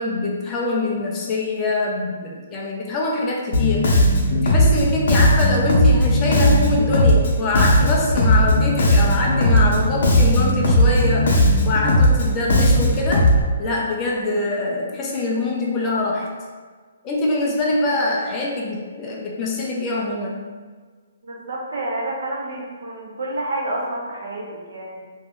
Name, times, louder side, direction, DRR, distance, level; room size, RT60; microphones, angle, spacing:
voice 1, 0.0-4.0 4.3-11.4 11.6-13.3 13.6-16.3 17.0-20.4, left 2 dB, 15° left, -3 dB, 0.3 m, -24 dB
Bass guitar, 3.5-13.4, left 1 dB, 55° left, 0.6 m, -17 dB
voice 2, 21.2-25.0, right 1 dB, 60° right, -2 dB, 0.7 m, -29 dB
2.5 x 2.2 x 3.5 m, 1.5 s
hypercardioid pair, 175°, 0 cm